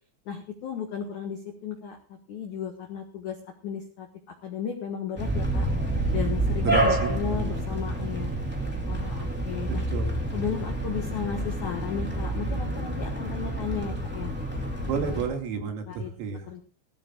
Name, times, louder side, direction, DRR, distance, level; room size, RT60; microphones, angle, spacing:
voice 1, 0.2-2.0 2.3-3.3 3.6-4.1 4.4-5.7 6.1-8.4 8.9-9.8 10.3-14.3 15.9-16.1 16.5-16.6, left 8 dB, 75° left, 3 dB, 1.7 m, -34 dB
sound 1, 5.2-15.3, right 1 dB, 5° right, 1.2 m, -28 dB
voice 2, 6.6-7.6 9.9-10.2 14.9-16.5, right 5 dB, 80° right, 3 dB, 4.9 m, -31 dB
19.5 x 15.0 x 2.5 m, 0.39 s
omnidirectional pair, 6.0 m